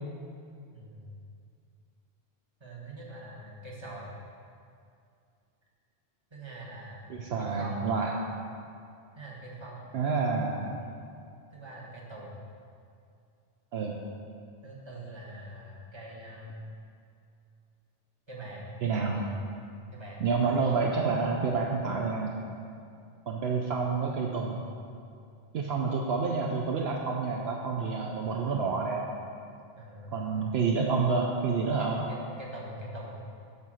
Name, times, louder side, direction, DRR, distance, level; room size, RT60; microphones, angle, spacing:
voice 1, 0.7-1.2 2.6-4.1 6.3-7.9 9.1-9.9 11.5-12.4 14.6-16.7 18.3-18.7 19.9-20.2 28.5-28.6 29.8-30.3 31.8-33.2, right 1 dB, 25° right, -4 dB, 1.4 m, -44 dB
voice 2, 7.1-8.1 9.9-10.9 13.7-14.0 18.8-19.3 20.2-22.3 23.3-24.6 25.5-29.0 30.1-32.0, right 4 dB, 70° right, 0 dB, 0.9 m, -28 dB
9.5 x 3.8 x 6.2 m, 2.4 s
omnidirectional pair, 1.1 m